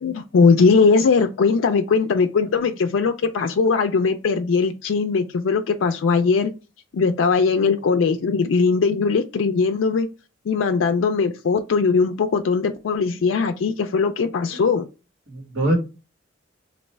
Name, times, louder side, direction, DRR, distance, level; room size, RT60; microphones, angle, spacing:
voice 1, 0.0-6.5 6.9-10.1 10.5-14.9, left 5 dB, 85° left, 0.4 m, -20 dB
voice 2, 15.3-15.7, right 1 dB, 85° right, 1.5 m, -25 dB
3.1 x 2.6 x 4.4 m
head